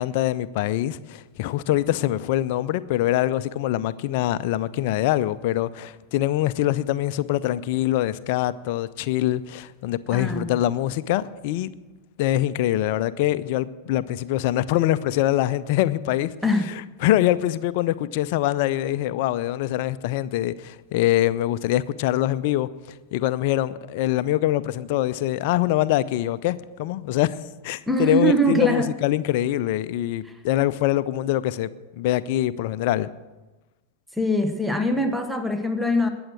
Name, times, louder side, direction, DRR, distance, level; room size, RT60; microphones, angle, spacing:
voice 1, 0.0-11.7 12.2-16.3 16.7-16.8 17.0-22.7 23.1-27.4 27.6-31.7 32.0-33.1, left 14 dB, 50° left, 0.6 m, -24 dB
voice 2, 10.1-10.5 16.4-16.7 27.9-28.9 30.2-30.3 34.1-36.1, equal, 5° right, 1.2 m, -22 dB
20.5 x 7.9 x 6.2 m
figure-of-eight pair, 90°, 0 cm